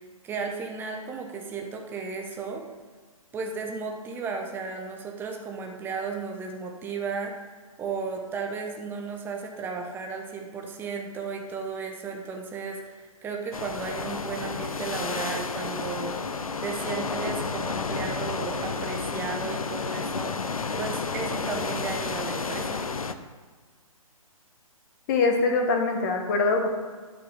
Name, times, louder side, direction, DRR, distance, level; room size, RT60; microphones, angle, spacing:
voice 1, 0.2-2.6 3.3-7.4 7.8-16.2 16.6-20.4 20.8-22.8, right 5 dB, 10° right, 2 dB, 1.0 m, -34 dB
sound 1, 13.5-23.1, left 4 dB, 70° left, 0.8 m, -31 dB
voice 2, 25.1-26.7, left 3 dB, 30° left, 3 dB, 1.5 m, -23 dB
11.0 x 5.9 x 6.5 m, 1.4 s
figure-of-eight pair, 130°, 19 cm